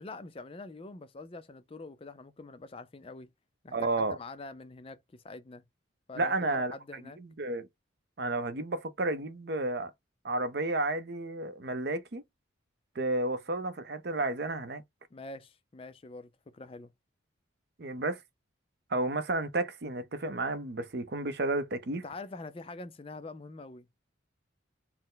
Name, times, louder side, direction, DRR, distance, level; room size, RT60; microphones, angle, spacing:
voice 1, 0.0-3.3 3.6-5.6 6.1-7.2 15.1-16.9 22.0-23.9, left 3 dB, 30° left, 0.4 m, -45 dB
voice 2, 3.7-4.2 6.2-7.7 8.2-9.9 10.2-12.2 13.0-14.8 17.8-18.2 18.9-22.0, right 2 dB, 55° right, 0.6 m, -32 dB
4.2 x 2.1 x 3.8 m
head